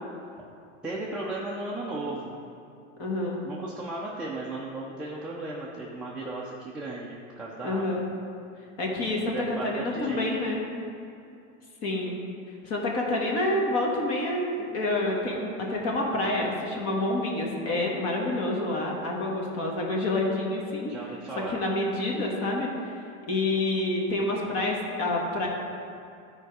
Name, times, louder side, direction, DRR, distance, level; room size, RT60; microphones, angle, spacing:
voice 1, 0.8-2.4 3.4-7.9 9.3-10.5 20.9-21.6, right 2 dB, 5° right, -7 dB, 0.3 m, -36 dB
voice 2, 3.0-3.4 7.6-8.1 8.8-10.6 11.8-12.2 12.6-20.9 21.5-25.5, left 2 dB, 40° left, -1 dB, 1.5 m, -28 dB
10.5 x 4.6 x 4.7 m, 2.6 s
supercardioid pair, 145°, 39 cm